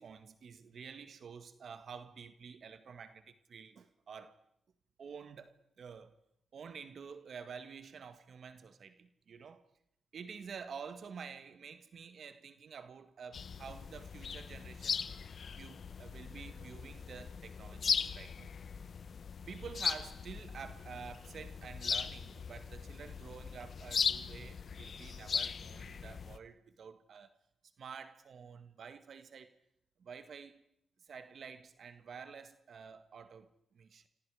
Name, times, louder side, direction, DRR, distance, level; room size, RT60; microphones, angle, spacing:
voice 1, 0.0-4.4 5.0-6.1 6.5-9.6 10.1-15.0 15.5-18.6 19.5-27.3 27.8-29.5 30.0-30.6 31.0-34.1, right 6 dB, 65° right, 1.8 m, -49 dB
sound 1, 13.3-26.4, left 6 dB, 60° left, 1.0 m, -39 dB
27.0 x 27.0 x 5.0 m
cardioid pair, 70°, 0 cm